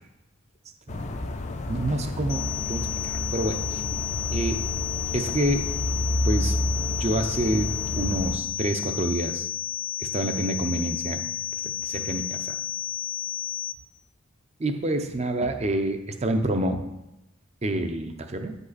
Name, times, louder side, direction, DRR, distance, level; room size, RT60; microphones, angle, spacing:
sound 1, 0.9-8.4, left 1 dB, 35° left, 0.5 m, -30 dB
voice 1, 1.7-3.8 4.3-4.6 5.1-5.7 6.2-6.5 7.0-9.5 10.0-12.5 14.6-16.9 17.6-18.6, right 1 dB, 30° right, 7 dB, 0.6 m, -28 dB
sound 2, 2.3-13.7, left 12 dB, 60° left, 1.1 m, -32 dB
9.1 x 5.4 x 4.1 m, 0.93 s
head